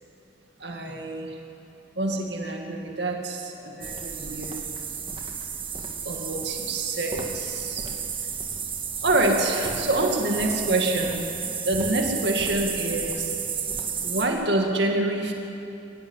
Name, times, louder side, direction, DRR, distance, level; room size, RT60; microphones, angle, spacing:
voice 1, 0.6-1.4 2.0-4.6 6.0-7.9 9.0-11.2 11.6-13.3 14.0-15.3, right 2 dB, 65° right, 1 dB, 2.3 m, -26 dB
sound 1, 3.8-14.3, right 6 dB, 30° right, 1.8 m, -32 dB
23.5 x 15.5 x 9.9 m, 2.8 s
head